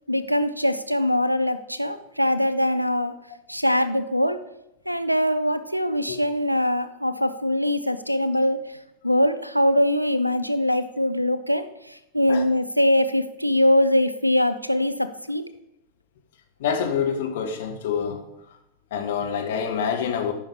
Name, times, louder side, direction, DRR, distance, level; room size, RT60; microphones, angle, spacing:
voice 1, 0.1-3.1 3.5-4.4 4.9-8.6 9.0-15.4, left 1 dB, 90° right, 13 dB, 0.5 m, -22 dB
voice 2, 16.6-18.2 18.9-20.3, left 7 dB, 55° left, 4 dB, 1.2 m, -26 dB
13.5 x 5.6 x 3.5 m, 0.84 s
figure-of-eight pair, 90°, 0 cm